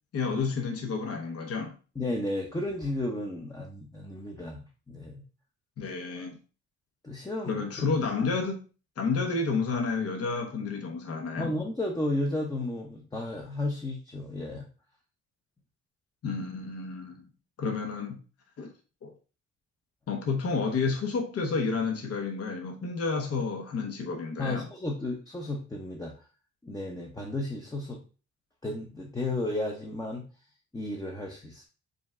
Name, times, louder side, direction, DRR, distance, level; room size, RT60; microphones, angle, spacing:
voice 1, 0.1-1.8 5.8-6.4 7.4-8.6 9.0-11.5 16.2-17.2 17.6-18.2 18.6-18.7 19.0-19.1 20.1-24.7, left 4 dB, 50° left, 1.0 m, -30 dB
voice 2, 2.0-5.2 7.0-7.7 11.4-14.7 24.4-26.1 26.6-28.0 28.6-30.2 30.7-31.7, left 1 dB, 10° left, 0.8 m, -33 dB
5.1 x 2.3 x 3.6 m
cardioid pair, 90°, 30 cm